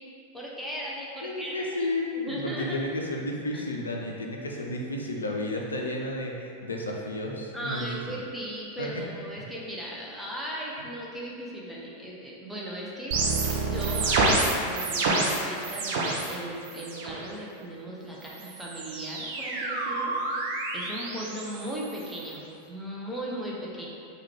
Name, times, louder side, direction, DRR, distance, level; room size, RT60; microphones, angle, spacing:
voice 1, 0.3-1.9 2.2-2.8 3.5-3.6 7.5-13.2 13.6-23.9, right 1 dB, ahead, -6 dB, 0.6 m, -37 dB
voice 2, 1.2-6.3 6.6-7.9 8.8-9.0, left 1 dB, 75° left, 0 dB, 0.4 m, -32 dB
sound 1, 13.1-16.3 16.6-17.2 18.2-22.3, right 3 dB, 50° right, 0.4 m, -28 dB
3.1 x 2.3 x 3.4 m, 2.4 s
figure-of-eight pair, 90°, 0 cm